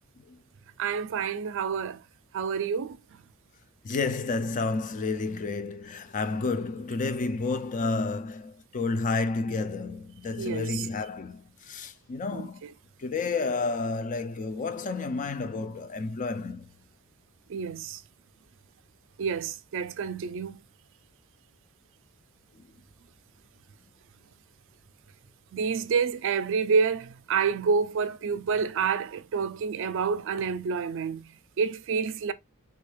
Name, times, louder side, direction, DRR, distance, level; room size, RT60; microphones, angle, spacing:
voice 1, 0.8-2.0 2.3-3.0 10.4-10.9 12.3-12.5 17.5-18.0 19.2-20.6 25.5-32.3, right 5 dB, 60° right, 0.4 m, -28 dB
voice 2, 3.8-12.6 13.0-16.7, left 3 dB, 35° left, 0.4 m, -30 dB
3.7 x 2.3 x 3.2 m
head